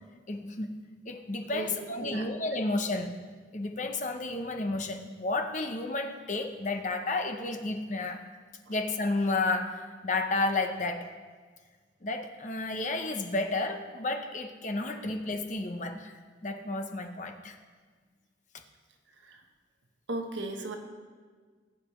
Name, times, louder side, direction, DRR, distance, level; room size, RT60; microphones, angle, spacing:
voice 1, 0.3-0.7 1.1-3.2 3.5-8.2 8.7-11.1 12.0-17.6, left 2 dB, 40° left, 5 dB, 0.8 m, -32 dB
voice 2, 1.5-2.6 8.7-8.8 19.2-19.4 20.1-20.8, right 2 dB, 70° right, 3 dB, 1.2 m, -37 dB
19.5 x 8.3 x 3.2 m, 1.5 s
head